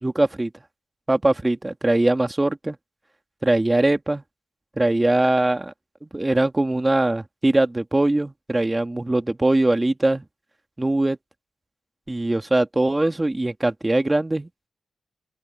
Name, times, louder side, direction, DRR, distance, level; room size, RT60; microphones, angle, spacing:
voice 1, 0.0-0.5 1.1-2.8 3.4-4.2 4.8-5.7 6.0-10.2 10.8-11.2 12.1-14.7, right 2 dB, 20° right, 2.2 m, -21 dB
open air
cardioid pair, 65°, 0 cm